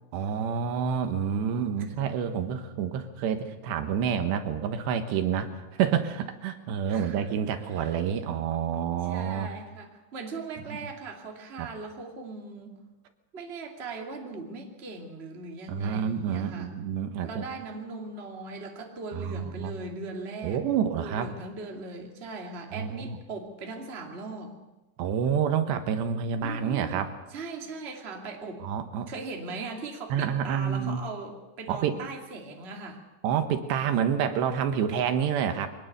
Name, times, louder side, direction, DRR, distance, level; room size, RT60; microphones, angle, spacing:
voice 1, 0.1-9.5 10.7-10.8 11.6-11.7 15.7-17.4 19.1-19.7 20.4-21.3 22.7-23.2 25.0-27.1 28.6-29.1 30.1-31.0 31.7-32.0 33.2-35.7, right 8 dB, 75° right, 8 dB, 3.4 m, -28 dB
voice 2, 6.9-7.3 7.7-7.9 9.0-12.8 13.3-16.7 17.2-20.6 21.0-24.6 26.4-27.0 27.3-28.7 29.1-33.0, right 3 dB, 20° right, 1 dB, 1.9 m, -39 dB
23.0 x 19.0 x 6.8 m, 1.1 s
omnidirectional pair, 5.1 m